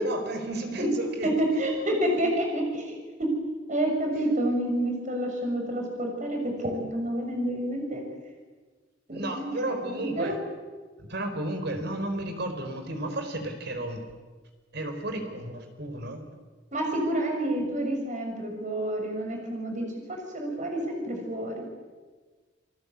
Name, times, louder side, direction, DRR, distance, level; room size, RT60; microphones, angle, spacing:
voice 1, 0.0-1.3 2.1-2.2 9.1-10.4 11.0-14.0 14.7-16.2, right 1 dB, 60° right, 6 dB, 4.6 m, -33 dB
voice 2, 1.2-3.3 3.7-8.1 9.1-9.8 10.0-10.4 16.7-21.5, right 1 dB, 40° right, 2 dB, 6.8 m, -29 dB
29.0 x 20.0 x 8.4 m, 1.4 s
head